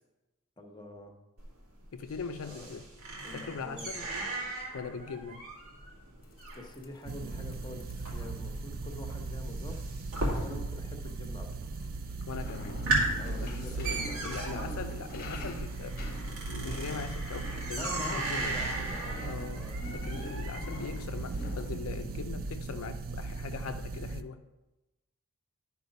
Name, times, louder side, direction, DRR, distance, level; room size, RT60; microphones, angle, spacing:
voice 1, 0.6-1.1 2.4-2.7 3.2-4.2 6.5-9.8 10.2-11.7 13.2-14.8 17.8-19.8, left 1 dB, 20° left, 3 dB, 1.0 m, -46 dB
sound 1, 1.4-11.0 11.2-11.8 12.2-12.3 12.6-21.0, right 2 dB, 70° right, 2.6 m, -37 dB
voice 2, 1.9-2.8 3.3-4.1 4.7-5.5 12.3-12.8 13.4-16.0 16.5-18.6 19.2-24.4, left 5 dB, 70° left, 7 dB, 0.5 m, -40 dB
sound 2, 6.2-21.8, left 2 dB, 40° left, 1.0 m, -47 dB
sound 3, 7.1-24.2, right 3 dB, 40° right, 0.4 m, -38 dB
11.0 x 4.9 x 5.3 m, 1.0 s
head